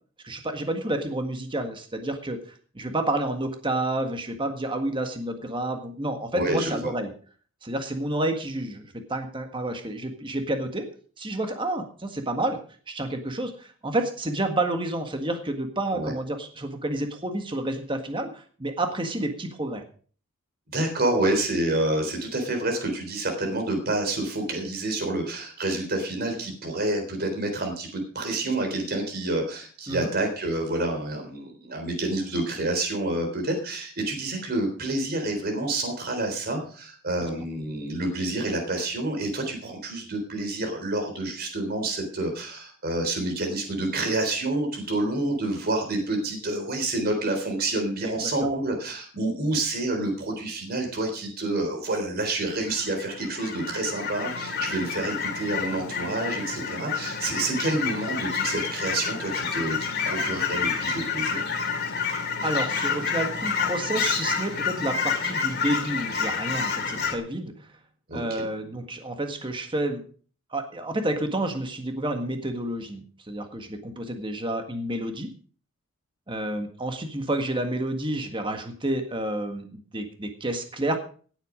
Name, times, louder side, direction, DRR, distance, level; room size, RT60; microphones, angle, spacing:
voice 1, 0.2-2.4 2.8-7.1 7.6-10.9 11.2-12.6 12.9-19.8 29.9-30.1 48.0-48.3 62.4-67.5 68.1-70.0 70.5-75.3 76.3-81.0, right 1 dB, 25° right, 5 dB, 1.7 m, -29 dB
voice 2, 6.3-6.9 15.9-16.1 20.7-61.4 68.1-68.2, right 2 dB, 45° right, 4 dB, 3.8 m, -28 dB
Fowl / Chirp tweet, 52.4-67.2, left 5 dB, 50° left, 2.6 m, -29 dB
17.0 x 8.1 x 5.1 m, 0.43 s
head